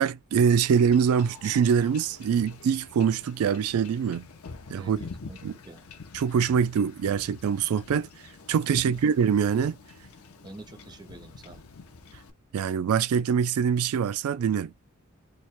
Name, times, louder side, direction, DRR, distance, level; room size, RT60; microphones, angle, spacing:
voice 1, 0.0-4.3 4.7-5.0 5.4-5.5 6.1-8.1 8.5-9.8 12.5-14.7, right 7 dB, 80° right, 0.3 m, -24 dB
Wind / Ocean / Boat Water vehicle, 0.7-12.3, left 4 dB, 80° left, 0.7 m, -46 dB
voice 2, 4.7-5.4 5.6-5.9 8.7-9.0 10.4-11.6, right 2 dB, 20° right, 0.5 m, -46 dB
3.1 x 2.1 x 4.1 m
head